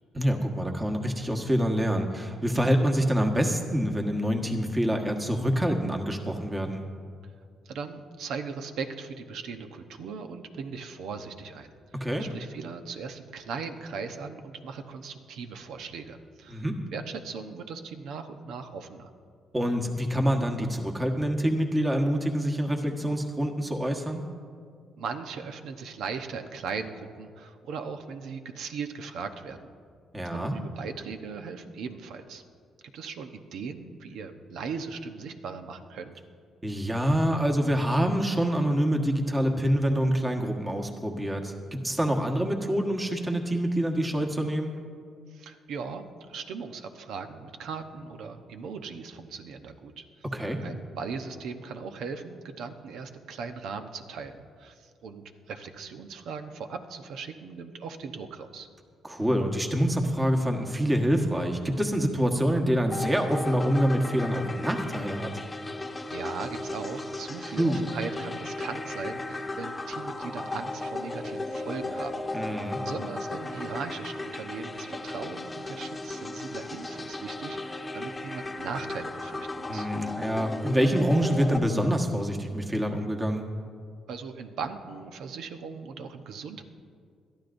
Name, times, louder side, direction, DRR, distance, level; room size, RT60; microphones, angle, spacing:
voice 1, 0.1-6.8 11.9-12.3 16.5-16.8 19.5-24.2 30.1-30.5 36.6-44.7 50.3-50.6 59.0-65.3 67.6-67.8 72.3-72.8 79.7-83.5, equal, 15° right, 3 dB, 1.4 m, -26 dB
voice 2, 7.7-16.6 16.9-19.1 25.0-29.7 30.2-32.4 32.9-36.1 45.3-50.0 50.6-58.7 66.1-79.9 84.1-86.6, right 5 dB, 80° right, 7 dB, 0.9 m, -38 dB
sound 1, 62.9-81.6, left 2 dB, 20° left, 1.0 m, -35 dB
22.0 x 13.0 x 2.6 m, 2.1 s
cardioid pair, 90°, 0 cm